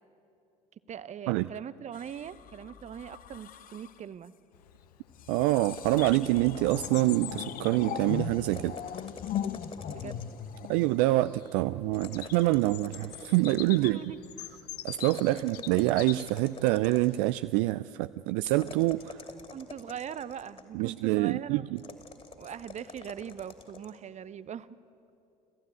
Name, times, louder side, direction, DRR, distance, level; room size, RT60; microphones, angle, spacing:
voice 1, 0.9-4.3 9.9-10.2 13.7-14.2 15.3-15.6 18.6-18.8 19.5-22.0 22.4-24.7, right 9 dB, 35° right, 16 dB, 0.8 m, -41 dB
sound 1, 1.9-4.0 5.1-11.5 12.4-12.7, left 9 dB, 45° left, 1.0 m, -39 dB
Bird vocalization bird call bird song, 4.5-17.3, left 12 dB, 75° left, 0.7 m, -45 dB
voice 2, 5.3-8.8 10.7-14.0 14.8-19.2 20.7-21.8, right 18 dB, 60° right, 13 dB, 0.4 m, -26 dB
sound 2, 5.5-7.4 8.4-10.5 11.9-13.9 15.0-17.3 18.5-20.8 21.8-24.0, left 4 dB, 30° left, 2.7 m, -47 dB
27.0 x 15.0 x 9.3 m, 2.7 s
figure-of-eight pair, 60°, 21 cm